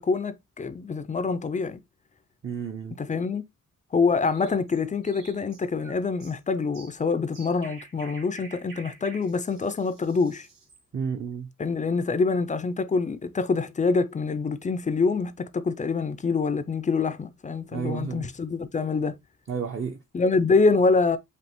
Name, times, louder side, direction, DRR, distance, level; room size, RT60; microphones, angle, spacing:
voice 1, 0.0-1.8 2.9-3.4 3.9-10.5 11.6-19.2 20.1-21.2, left 4 dB, 25° left, 0.3 m, -25 dB
voice 2, 2.4-3.0 10.9-11.5 17.7-18.3 19.5-20.0, right 6 dB, 40° right, 0.5 m, -31 dB
sound 1, 4.2-10.8, right 3 dB, 85° right, 1.5 m, -49 dB
5.1 x 2.8 x 3.0 m
wide cardioid pair, 160°, 32 cm